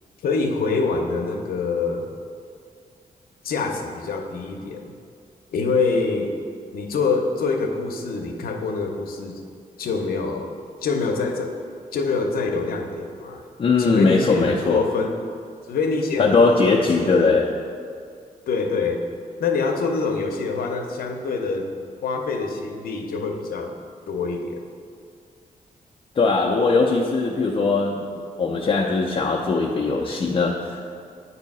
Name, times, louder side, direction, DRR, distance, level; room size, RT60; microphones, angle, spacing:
voice 1, 0.2-2.1 3.4-4.9 5.5-6.3 6.7-9.4 9.8-10.5 10.8-11.6 11.9-13.5 13.8-15.2 15.7-17.3 18.5-19.1 19.4-21.7 22.0-23.8 24.1-24.6, left 4 dB, 80° left, 3 dB, 0.7 m, -25 dB
voice 2, 13.6-14.8 16.2-17.5 26.2-30.8, left 4 dB, 40° left, -2 dB, 0.5 m, -20 dB
8.1 x 2.7 x 5.3 m, 2.2 s
cardioid pair, 95°, 15 cm